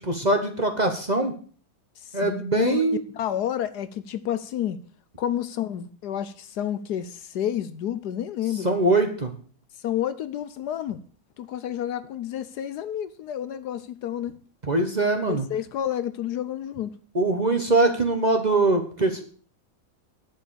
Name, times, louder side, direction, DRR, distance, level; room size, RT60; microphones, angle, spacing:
voice 1, 0.0-1.3 2.1-3.0 8.6-9.3 14.7-15.4 17.1-19.3, right 2 dB, 30° right, 1.0 m, -22 dB
voice 2, 2.0-2.9 3.1-4.8 5.2-8.7 9.8-11.0 11.4-14.3 15.3-16.9, left 10 dB, 70° left, 1.2 m, -30 dB
10.5 x 7.5 x 6.9 m
omnidirectional pair, 1.9 m